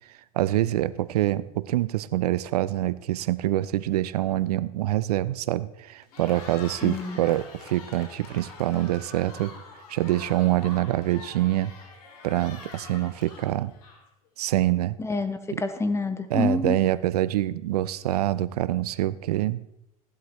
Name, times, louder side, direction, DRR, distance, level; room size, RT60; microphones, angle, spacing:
voice 1, 0.3-9.5 9.9-11.7 12.2-13.7 14.4-15.0 15.5-15.6 16.3-19.6, right 14 dB, 80° right, 17 dB, 0.5 m, -25 dB
Cheering, 6.0-14.3, left 4 dB, 75° left, 2.8 m, -45 dB
voice 2, 6.8-7.2 15.0-16.8, left 3 dB, 15° left, 10 dB, 1.1 m, -27 dB
15.5 x 11.0 x 3.2 m, 0.85 s
hypercardioid pair, 90°, 19 cm